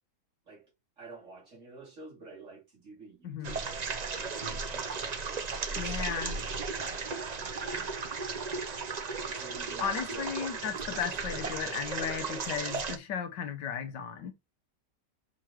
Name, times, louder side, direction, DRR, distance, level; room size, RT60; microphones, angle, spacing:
voice 1, 1.0-6.0 6.2-7.9 9.3-10.4, right 3 dB, 45° right, 3.6 m, -50 dB
voice 2, 3.2-3.6 5.8-6.4 9.8-14.3, left 8 dB, 80° left, 1.5 m, -35 dB
sound 1, 3.4-13.0, right 4 dB, 60° right, 0.4 m, -35 dB
6.1 x 5.7 x 3.1 m
omnidirectional pair, 1.9 m